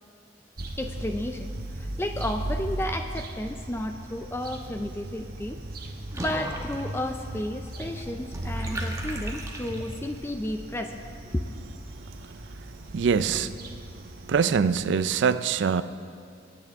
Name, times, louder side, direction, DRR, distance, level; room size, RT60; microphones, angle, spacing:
sound 1, 0.6-15.1, right 1 dB, 55° right, 1.0 m, -37 dB
voice 1, 0.8-5.6 6.1-11.0 11.3-11.4, left 1 dB, 15° left, 6 dB, 0.4 m, -32 dB
Water / Bathtub (filling or washing), 6.1-10.2, right 1 dB, 20° right, 1.1 m, -39 dB
voice 2, 12.9-13.5 14.3-15.8, right 6 dB, 85° right, 13 dB, 0.4 m, -23 dB
22.5 x 8.9 x 3.5 m, 2.4 s
head